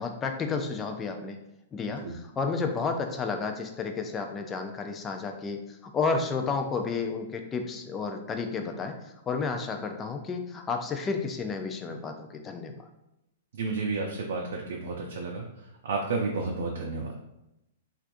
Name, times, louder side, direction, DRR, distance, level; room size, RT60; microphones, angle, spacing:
voice 1, 0.0-1.4 1.7-5.6 5.9-9.0 9.3-12.8, left 4 dB, 20° left, 5 dB, 0.4 m, -31 dB
voice 2, 13.5-15.5 15.8-17.1, right 3 dB, 70° right, -1 dB, 0.5 m, -31 dB
3.2 x 2.4 x 2.6 m, 0.87 s
hypercardioid pair, 115°, 0 cm